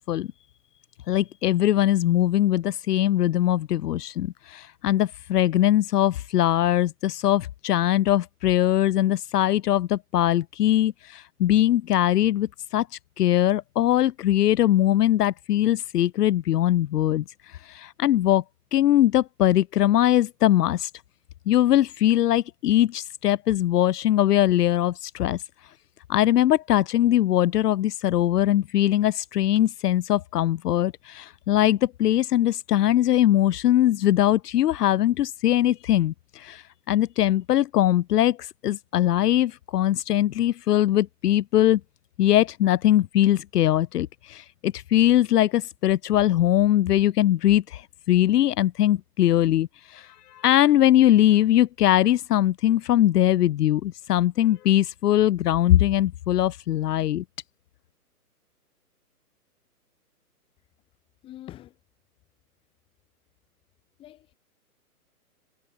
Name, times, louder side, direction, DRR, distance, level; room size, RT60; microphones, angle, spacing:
voice 1, 1.1-12.9 13.2-17.2 17.6-18.4 18.7-20.9 21.5-25.4 26.1-41.8 42.2-57.2, left 12 dB, 80° left, 0.6 m, -21 dB
voice 2, 61.2-61.8 64.0-64.3, left 13 dB, 10° left, 4.8 m, -44 dB
hypercardioid pair, 170°, 46 cm